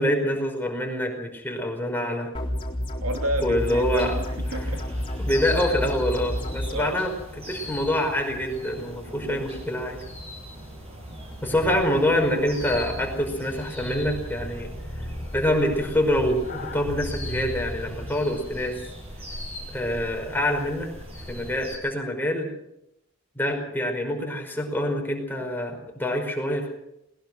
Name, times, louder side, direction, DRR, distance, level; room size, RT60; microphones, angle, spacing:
voice 1, 0.0-2.3 3.4-4.1 5.2-7.1 7.5-10.0 11.4-18.8 19.7-20.9 21.3-22.5 23.4-26.7, left 1 dB, 10° left, 2 dB, 5.1 m, -26 dB
sound 1, 2.3-6.7, left 1 dB, 25° left, 4.1 m, -30 dB
voice 2, 3.0-4.8 6.7-7.0 9.1-9.4, right 1 dB, 75° right, 4 dB, 2.8 m, -31 dB
sound 2, 3.6-21.8, equal, 25° right, 6.8 m, -40 dB
sound 3, 11.5-18.4, left 1 dB, 45° left, 2.8 m, -38 dB
21.0 x 20.5 x 6.2 m, 0.81 s
head